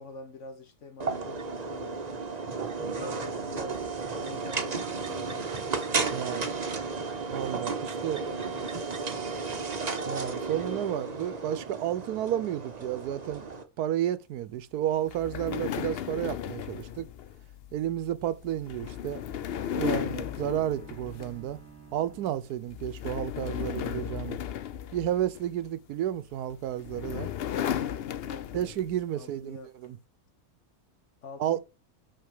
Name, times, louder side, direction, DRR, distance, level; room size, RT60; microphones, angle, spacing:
voice 1, 0.0-2.1 3.0-5.6 6.1-7.0 8.0-9.2 10.7-10.9 28.3-28.7 29.1-29.9 31.2-31.6, left 4 dB, 55° left, 1.4 m, -46 dB
sound 1, 1.0-13.6, right 4 dB, 35° right, 0.8 m, -33 dB
voice 2, 6.1-6.4 7.3-8.2 10.1-13.4 13.8-17.1 17.7-19.2 19.7-21.6 21.9-24.4 24.9-27.3 28.5-30.0 31.4-31.6, right 11 dB, 85° right, 1.2 m, -31 dB
sound 2, 15.1-21.6 22.0-22.3 22.7-25.7 26.5-28.9, left 10 dB, 75° left, 0.5 m, -35 dB
Bowed string instrument, 18.5-23.2, right 6 dB, 10° right, 1.6 m, -53 dB
5.8 x 5.2 x 4.9 m
omnidirectional pair, 1.6 m